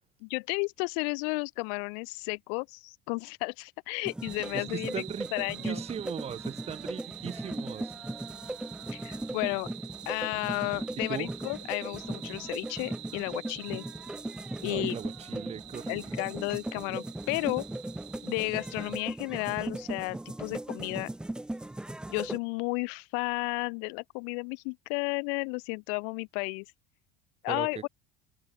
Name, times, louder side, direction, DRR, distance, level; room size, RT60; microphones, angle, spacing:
voice 1, 0.2-4.9 5.3-5.8 8.9-9.7 10.1-13.8 14.6-14.9 15.9-17.7 18.2-21.1 22.1-26.6 27.4-27.9, left 40 dB or more, 75° left, 0.5 m, -33 dB
sound 1, 4.0-22.4, right 1 dB, 5° right, 0.5 m, -38 dB
sound 2, 4.2-19.0, right 26 dB, 60° right, 3.6 m, -47 dB
voice 2, 4.5-5.3 5.6-7.9 11.1-11.3 14.7-16.1 27.5-27.9, right 8 dB, 20° right, 1.1 m, -38 dB
cardioid pair, 170°, 31 cm